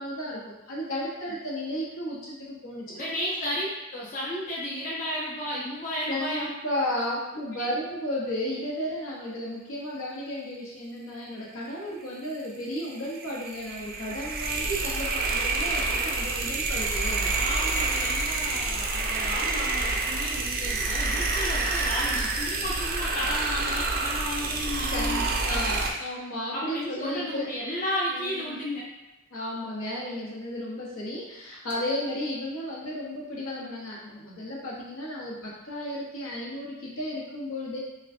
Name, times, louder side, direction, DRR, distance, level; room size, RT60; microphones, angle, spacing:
voice 1, 0.0-3.0 6.1-17.3 24.9-27.5 28.1-28.6 29.3-37.8, left 1 dB, 75° left, -4 dB, 1.0 m, -34 dB
voice 2, 2.8-6.5 17.3-25.8 26.5-28.8, left 1 dB, 35° left, -6 dB, 0.7 m, -33 dB
sound 1, 12.8-25.9, right 3 dB, 45° right, 0.4 m, -28 dB
5.2 x 2.2 x 2.6 m, 0.98 s
head